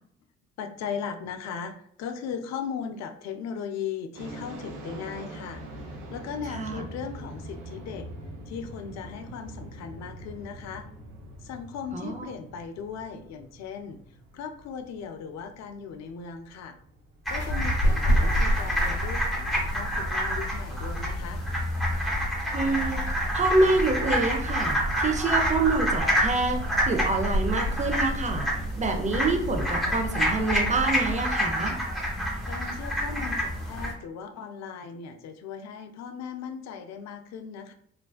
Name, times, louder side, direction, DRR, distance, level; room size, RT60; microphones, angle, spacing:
voice 1, 0.6-8.1 8.5-10.9 11.4-14.0 14.3-16.7 17.3-21.4 32.5-37.7, left 6 dB, 65° left, 7 dB, 0.4 m, -37 dB
sound 1, 4.1-20.9, right 1 dB, 85° right, 0.6 m, -44 dB
voice 2, 6.5-6.8 11.9-12.2 22.5-23.0 23.3-28.5 28.8-31.8, right 3 dB, 25° right, 4 dB, 0.5 m, -26 dB
sound 2, 17.3-31.1, equal, 40° left, 0.9 m, -30 dB
sound 3, 17.3-33.9, equal, ahead, 1.0 m, -29 dB
2.5 x 2.1 x 2.3 m, 0.62 s
hypercardioid pair, 50°, 30 cm